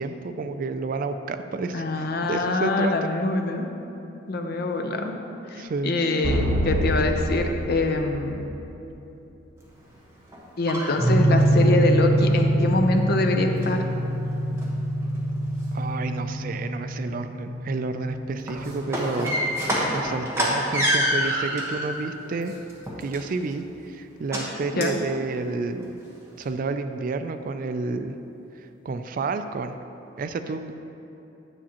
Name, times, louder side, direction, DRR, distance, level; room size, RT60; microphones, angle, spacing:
voice 1, 0.0-3.1 5.6-5.9 15.7-19.3 19.7-22.5 23.0-26.0 26.4-28.2 28.9-29.8 30.2-30.7, right 3 dB, 45° right, 9 dB, 0.3 m, -30 dB
voice 2, 1.7-3.7 4.3-5.1 5.5-8.5 10.6-13.8 24.8-25.0, left 2 dB, 55° left, 4 dB, 0.6 m, -24 dB
sound 1, 6.2-8.9, right 1 dB, 90° right, 0.6 m, -26 dB
sound 2, 10.3-11.6 12.1-12.4 12.7-13.2 13.5-14.1 14.6-14.7 15.0-15.7 16.0-16.1 18.3-21.9 22.4-23.5 24.3-24.5 24.8-25.0 25.4-25.5 25.8-25.9 26.4-26.5, equal, 15° right, 1.1 m, -27 dB
sound 3, 11.0-21.1, right 1 dB, 25° left, 1.5 m, -25 dB
9.8 x 7.2 x 2.9 m, 3.0 s
head